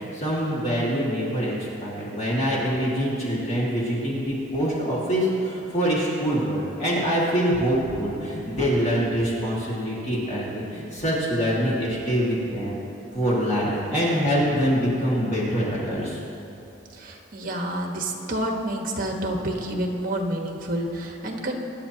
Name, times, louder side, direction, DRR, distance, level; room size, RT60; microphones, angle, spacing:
voice 1, 0.0-12.8 13.1-16.2, equal, 35° left, -6 dB, 2.1 m, -25 dB
voice 2, 16.9-21.6, right 1 dB, 45° right, 2 dB, 1.3 m, -29 dB
23.5 x 10.0 x 2.9 m, 2.9 s
head